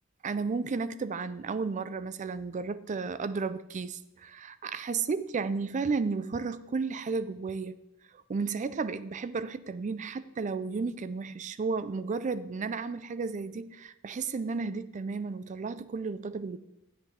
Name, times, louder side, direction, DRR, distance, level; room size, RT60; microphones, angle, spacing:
voice 1, 0.2-7.8 8.3-16.6, right 4 dB, 35° right, 0.4 m, -33 dB
10.5 x 8.1 x 3.6 m
head